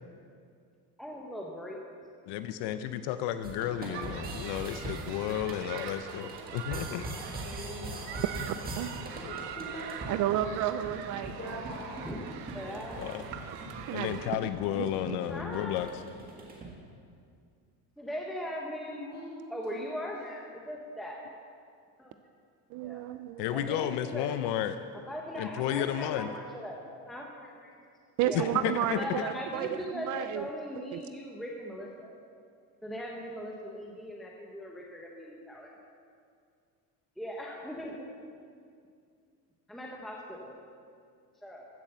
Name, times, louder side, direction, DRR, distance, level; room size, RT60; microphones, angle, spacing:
voice 1, 1.0-1.8 12.0-12.2 12.5-13.1 15.3-15.8 18.0-19.0 19.5-21.2 22.0-22.1 22.8-23.0 23.5-24.4 24.9-26.8 27.1-27.7 28.2-28.5 28.9-32.1 32.8-35.7 37.2-38.1 39.7-40.6 41.4-41.7, equal, ahead, -2 dB, 0.9 m, -39 dB
voice 2, 2.3-7.1 7.7-7.9 9.2-9.4 13.0-13.1 13.9-15.9 23.4-24.8 25.4-26.3 28.3-29.0, left 11 dB, 80° left, 10 dB, 0.7 m, -32 dB
sound 1, 3.4-16.7, right 2 dB, 20° right, 1.7 m, -42 dB
sound 2, 3.9-14.3, right 8 dB, 85° right, 1.1 m, -43 dB
voice 3, 7.1-8.5 9.6-10.0 11.4-12.0 18.9-19.9, left 1 dB, 25° left, -4 dB, 4.1 m, -44 dB
voice 4, 10.1-11.6 13.9-14.2 14.8-14.9 22.7-23.4 28.2-30.4 30.9-31.0, right 12 dB, 50° right, 11 dB, 0.4 m, -31 dB
15.0 x 7.3 x 6.8 m, 2.3 s
cardioid pair, 165°, 40 cm